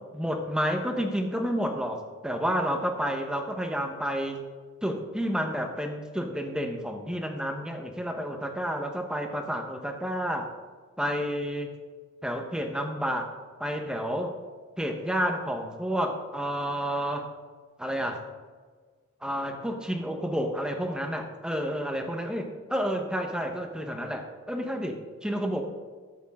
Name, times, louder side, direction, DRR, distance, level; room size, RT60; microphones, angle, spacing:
voice 1, 0.1-4.4 4.8-10.5 11.0-11.7 12.2-13.3 13.6-14.3 14.8-17.3 17.8-18.2 19.2-25.6, equal, 5° right, 4 dB, 1.1 m, -30 dB
13.0 x 8.2 x 3.7 m, 1.5 s
head